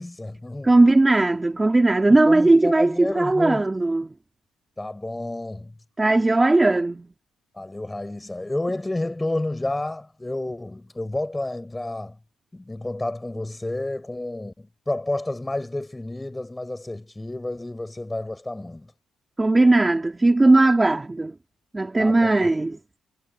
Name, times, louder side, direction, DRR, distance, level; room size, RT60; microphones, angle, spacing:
voice 1, 0.0-0.7 2.1-3.7 4.8-5.7 7.6-12.2 12.5-18.9 22.0-22.5, left 2 dB, 15° left, 7.3 m, -30 dB
voice 2, 0.6-4.1 6.0-7.1 19.4-21.3 21.7-22.8, right 2 dB, 15° right, 3.9 m, -18 dB
cardioid pair, 90°, 0 cm